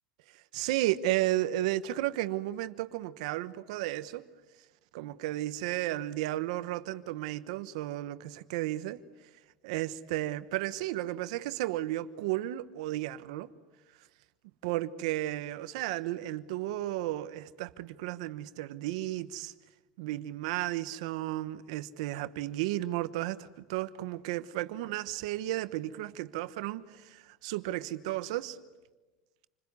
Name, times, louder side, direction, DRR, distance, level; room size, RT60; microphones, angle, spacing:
voice 1, 0.3-4.3 4.9-9.0 9.6-13.5 14.6-19.5 20.0-28.6, right 15 dB, 80° right, 1.1 m, -33 dB
28.5 x 21.0 x 9.6 m
supercardioid pair, 135°, 3 cm